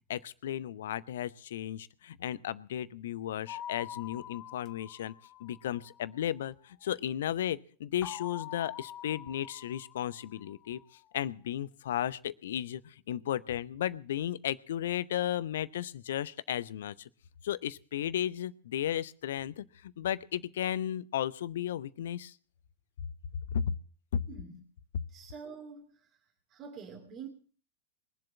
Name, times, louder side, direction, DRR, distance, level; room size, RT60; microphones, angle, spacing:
voice 1, 0.1-5.1 5.4-10.8 11.1-17.1 17.4-22.3 23.5-23.6, left 11 dB, 60° left, 18 dB, 0.7 m, -34 dB
sound 1, 3.5-6.3 8.0-10.8, left 11 dB, 35° left, 1.0 m, -45 dB
voice 2, 24.3-24.6 25.1-26.1 26.5-27.3, right 5 dB, 35° right, 3 dB, 2.5 m, -46 dB
22.0 x 7.6 x 7.1 m, 0.43 s
figure-of-eight pair, 90°, 0 cm